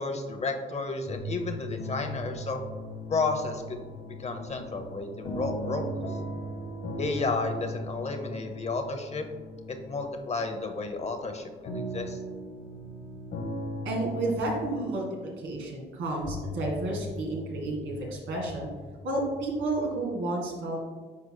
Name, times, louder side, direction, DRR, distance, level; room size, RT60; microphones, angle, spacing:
voice 1, 0.0-2.6 3.1-6.2 7.0-9.3 9.8-12.2, left 3 dB, 35° left, 5 dB, 0.7 m, -32 dB
sound 1, 1.1-10.4 11.3-11.4 16.2-20.1, left 2 dB, 55° left, 1.2 m, -43 dB
sound 2, 1.8-14.7, equal, 80° left, 1.1 m, -38 dB
voice 2, 13.8-18.7 19.0-20.8, right 2 dB, 80° right, -1 dB, 1.8 m, -31 dB
9.5 x 4.7 x 2.2 m, 1.4 s
cardioid pair, 90°, 20 cm